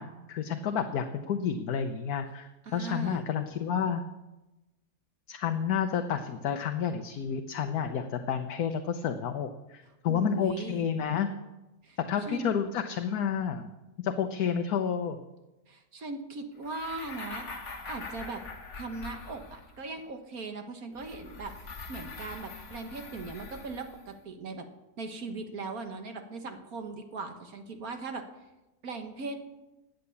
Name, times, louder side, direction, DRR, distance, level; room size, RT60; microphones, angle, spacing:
voice 1, 0.0-4.0 5.3-11.3 12.1-13.7 14.0-15.2, left 7 dB, 70° left, 6 dB, 1.4 m, -30 dB
voice 2, 2.6-3.3 10.1-10.8 11.8-12.0 12.3-12.5 15.7-17.5 17.9-18.4 18.7-24.7 25.0-28.2 28.8-29.4, right 3 dB, 65° right, 6 dB, 1.7 m, -39 dB
sound 1, 16.6-19.9 21.0-24.1, left 3 dB, 50° left, 1.7 m, -43 dB
17.0 x 9.7 x 7.0 m, 1.0 s
omnidirectional pair, 1.7 m